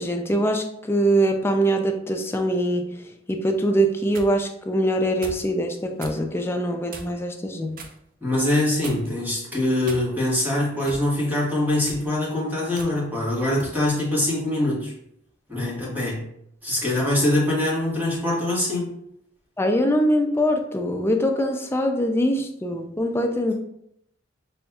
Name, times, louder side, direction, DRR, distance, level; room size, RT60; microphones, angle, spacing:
voice 1, 0.0-2.8 3.3-7.8 19.6-23.5, equal, 15° left, 4 dB, 0.4 m, -23 dB
sound 1, 3.8-4.3 5.2-5.5 6.0-6.2 6.9-7.3 7.8-8.0 8.8-9.2 9.8-10.4 10.9-11.1 11.7-12.1 12.8-12.9 13.6-13.8, right 3 dB, 50° right, 0.5 m, -39 dB
voice 2, 8.2-14.9 15.5-16.3 16.6-19.0, left 1 dB, 10° right, -6 dB, 1.3 m, -23 dB
5.5 x 2.6 x 2.3 m, 0.74 s
head